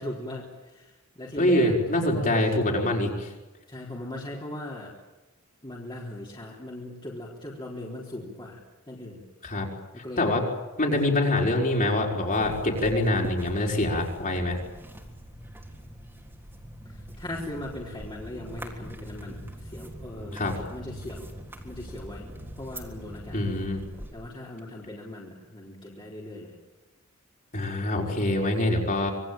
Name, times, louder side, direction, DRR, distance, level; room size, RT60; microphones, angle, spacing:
voice 1, 0.0-2.5 3.7-4.9 5.6-8.6 8.9-9.2 9.9-10.3 11.0-11.2 16.9-21.3 21.6-22.3 22.6-23.5 24.1-26.5, left 1 dB, 20° left, -4 dB, 4.0 m, -39 dB
voice 2, 1.3-3.3 9.4-9.7 10.2-10.4 10.8-14.6 20.3-20.5 23.3-23.8 27.5-29.1, left 1 dB, 40° left, 0 dB, 5.4 m, -25 dB
sound 1, 12.3-24.1, equal, 10° right, 3.6 m, -42 dB
26.5 x 21.0 x 9.0 m, 1.1 s
head